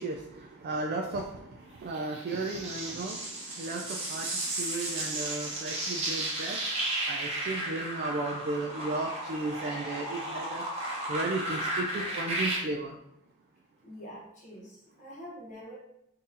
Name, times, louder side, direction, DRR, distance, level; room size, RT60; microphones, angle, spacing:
voice 1, 0.0-6.6 7.1-10.6 11.1-13.0, right 2 dB, 45° right, 1 dB, 0.3 m, -35 dB
sound 1, 1.9-12.6, right 1 dB, 30° right, 0.8 m, -34 dB
voice 2, 13.8-15.8, equal, 35° left, -4 dB, 1.0 m, -45 dB
3.7 x 2.6 x 2.7 m, 0.82 s
head